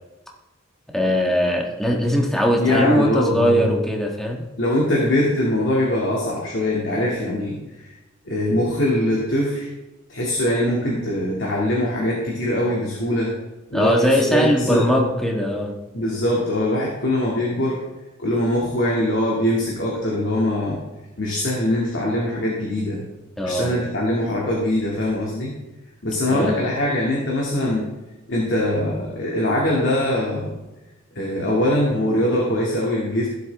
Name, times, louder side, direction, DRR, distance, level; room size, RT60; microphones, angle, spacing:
voice 1, 0.9-4.4 13.7-15.7 23.4-23.7 26.3-26.5, equal, ahead, -1 dB, 1.5 m, -20 dB
voice 2, 2.6-3.7 4.6-7.6 8.3-9.7 10.1-13.3 13.7-14.9 15.9-17.8 18.2-20.8 21.2-23.0 23.4-25.5 26.0-27.9 28.3-30.6 31.2-33.3, left 1 dB, 60° left, -4 dB, 2.4 m, -22 dB
16.5 x 7.4 x 3.5 m, 1.0 s
head